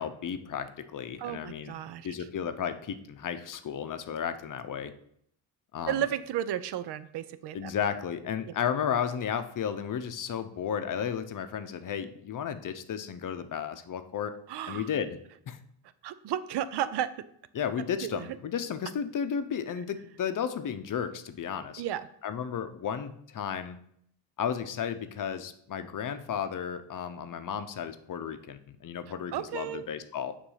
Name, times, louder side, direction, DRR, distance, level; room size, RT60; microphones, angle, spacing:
voice 1, 0.0-1.8 2.0-4.9 5.7-6.0 7.5-14.3 14.7-15.2 15.5-15.6 17.5-21.8 22.2-23.8 24.4-30.3, left 8 dB, 45° left, 10 dB, 0.7 m, -33 dB
voice 2, 1.2-2.1 5.9-7.7 14.5-14.9 16.0-17.1 18.0-18.3 21.8-22.1 29.3-29.9, right 11 dB, 60° right, 14 dB, 0.6 m, -33 dB
6.9 x 2.7 x 5.6 m, 0.67 s
supercardioid pair, 70°, 46 cm